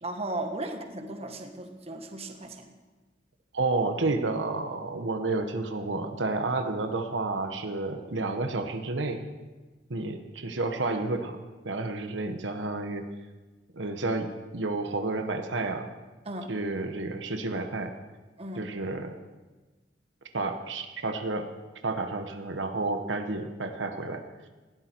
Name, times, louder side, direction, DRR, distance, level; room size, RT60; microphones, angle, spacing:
voice 1, 0.0-2.7 16.2-16.5 18.4-18.7, right 2 dB, 35° right, 4 dB, 1.6 m, -36 dB
voice 2, 3.5-9.3 9.9-11.4 11.6-13.1 13.7-15.9 16.5-17.9 18.6-19.1 20.3-21.5 21.8-24.2, right 3 dB, 80° right, 6 dB, 1.2 m, -30 dB
19.5 x 14.5 x 4.6 m, 1.2 s
head